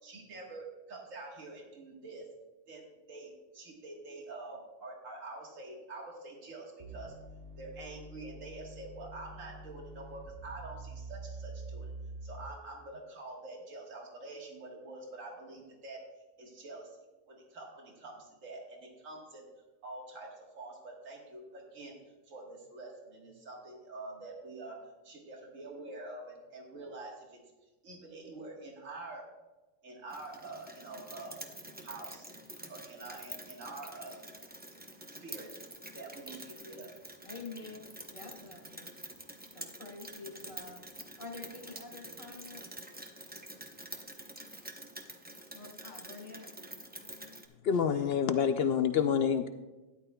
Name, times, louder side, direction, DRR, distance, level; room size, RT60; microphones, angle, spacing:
voice 1, 0.0-2.3 2.7-7.1 7.6-11.9 12.2-16.0 16.4-16.9 17.3-19.5 19.8-21.9 22.3-24.8 25.0-27.4 27.8-29.3 29.8-31.4 31.8-32.3 32.7-34.2 35.1-35.5 35.9-36.9 37.6-37.7, right 2 dB, 80° right, -1 dB, 2.0 m, -46 dB
sound 1, 6.8-12.8, right 2 dB, 55° right, 1.0 m, -46 dB
Rain, 30.1-47.5, right 1 dB, 10° right, 0.5 m, -47 dB
voice 2, 37.2-37.8 38.1-38.9 39.5-40.8 41.2-42.6 45.5-46.5, left 3 dB, 80° left, -2 dB, 2.0 m, -47 dB
voice 3, 47.6-49.5, left 7 dB, 65° left, 9 dB, 0.7 m, -27 dB
12.5 x 10.5 x 2.3 m, 1.1 s
omnidirectional pair, 1.3 m